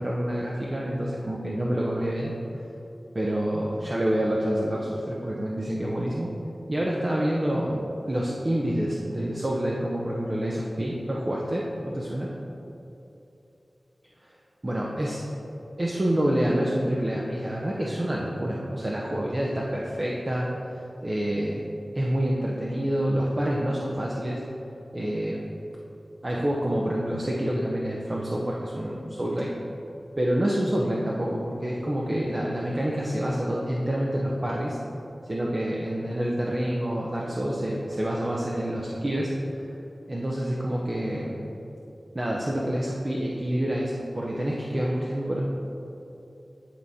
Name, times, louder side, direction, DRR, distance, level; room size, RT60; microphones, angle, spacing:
voice 1, 0.0-2.3 3.1-6.3 6.7-12.3 14.2-14.3 14.6-15.2 15.8-20.5 21.0-21.6 21.9-24.4 24.9-25.5 26.2-29.5 30.2-34.8 35.2-39.3 39.5-39.8 40.1-41.4 42.1-45.4, right 1 dB, 40° right, -4 dB, 0.7 m, -27 dB
10.0 x 3.6 x 4.1 m, 2.9 s
wide cardioid pair, 50°, 0 cm